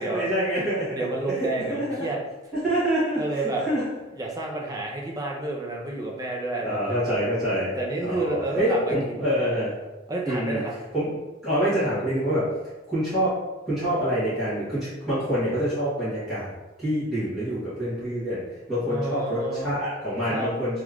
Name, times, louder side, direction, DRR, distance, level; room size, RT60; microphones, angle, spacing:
voice 1, 0.0-1.0 1.4-2.0 2.6-3.9 6.6-7.7 8.0-9.7 10.2-10.6 10.9-11.1 11.4-12.5 12.9-13.4 13.7-16.5 16.8-18.4 18.7-20.8, equal, ahead, -15 dB, 1.3 m, -26 dB
voice 2, 0.9-2.2 3.2-3.6 4.2-7.2 7.8-9.1 10.1-10.7 18.8-19.8 20.3-20.5, right 2 dB, 20° right, -1 dB, 0.5 m, -30 dB
3.1 x 2.4 x 3.4 m, 1.1 s
head